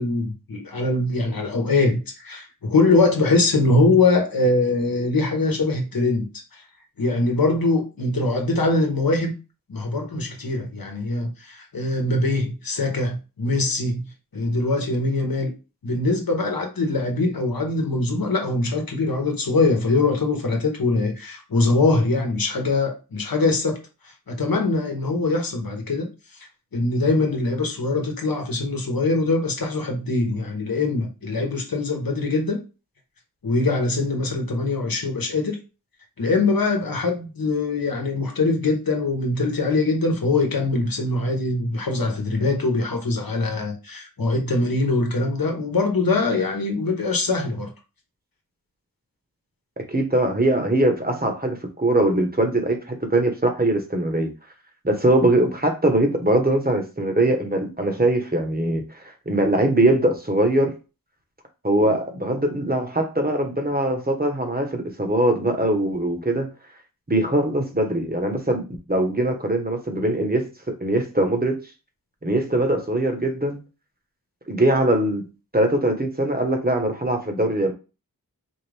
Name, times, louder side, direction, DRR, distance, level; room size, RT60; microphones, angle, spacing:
voice 1, 0.0-6.6 7.0-9.3 9.7-14.0 14.3-15.5 15.8-23.8 24.3-26.1 26.7-32.6 33.4-35.6 36.2-47.7, left 3 dB, 70° left, 1.1 m, -22 dB
voice 2, 49.8-54.3 54.8-60.7 61.6-66.5 67.1-71.7 72.2-73.6 74.5-75.3 75.5-77.7, right 1 dB, 25° right, 1.1 m, -22 dB
4.5 x 2.5 x 3.4 m
cardioid pair, 40°, 37 cm